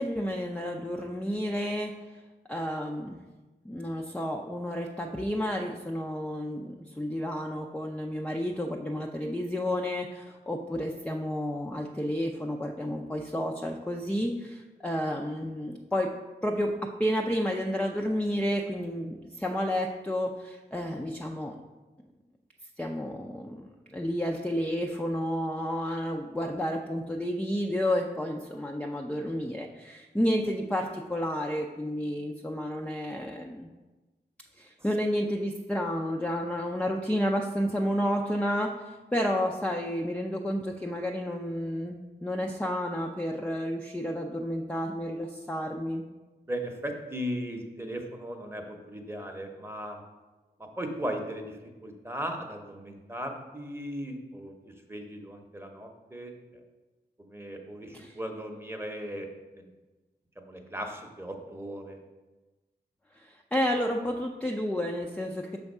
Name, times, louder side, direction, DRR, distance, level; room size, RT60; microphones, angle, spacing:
voice 1, 0.0-1.9 2.5-3.2 3.6-16.1 16.4-21.5 22.8-33.7 34.6-46.0 57.9-58.2 63.2-65.6, equal, 5° left, 1 dB, 0.4 m, -31 dB
voice 2, 46.5-50.0 50.6-56.3 57.2-59.3 59.6-59.7 60.4-62.0, equal, 15° right, 3 dB, 0.9 m, -37 dB
5.8 x 3.5 x 5.4 m, 1.2 s
cardioid pair, 60°, 18 cm